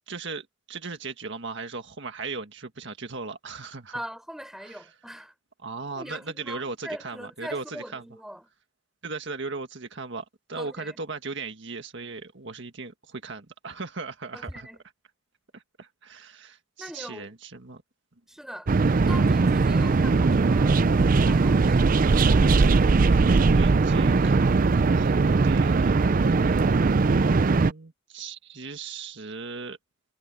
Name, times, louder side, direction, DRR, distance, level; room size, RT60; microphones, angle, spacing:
voice 1, 0.1-4.0 4.6-5.0 5.6-8.0 9.0-14.7 15.5-17.8 23.0-25.9 26.9-29.8, right 4 dB, 65° right, 1.8 m, -38 dB
voice 2, 3.9-5.3 6.0-8.5 10.6-11.0 14.3-14.8 16.8-17.3 18.3-18.7 19.0-20.8 21.1-22.1, equal, ahead, 6.2 m, -41 dB
sound 1, 18.7-27.7, right 4 dB, 45° right, 0.5 m, -20 dB
head